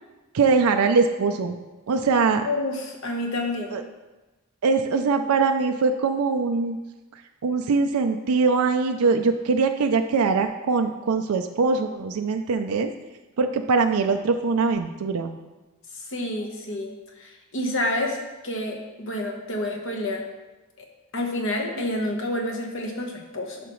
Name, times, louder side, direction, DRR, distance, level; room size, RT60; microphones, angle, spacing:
voice 1, 0.3-1.6 1.9-2.5 3.7-3.8 4.6-6.8 7.4-12.9 13.4-15.4, right 4 dB, 75° right, 6 dB, 0.4 m, -22 dB
voice 2, 2.4-3.7 16.1-16.9 17.2-18.2 18.4-20.2 21.1-23.6, left 1 dB, 60° left, 1 dB, 1.2 m, -28 dB
10.5 x 5.9 x 3.1 m, 1.1 s
head